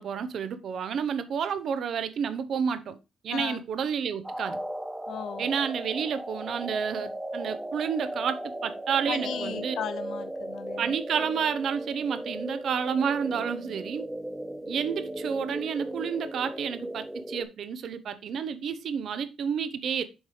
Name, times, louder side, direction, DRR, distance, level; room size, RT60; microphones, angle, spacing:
voice 1, 0.0-3.0 3.2-4.6 5.4-9.8 10.8-14.1 14.7-20.0, right 7 dB, 65° right, 0.8 m, -30 dB
sound 1, 4.2-17.4, right 1 dB, 5° right, 0.8 m, -37 dB
voice 2, 5.1-5.4 9.1-10.9, left 9 dB, 70° left, 0.5 m, -36 dB
7.2 x 3.3 x 4.8 m
cardioid pair, 90°, 0 cm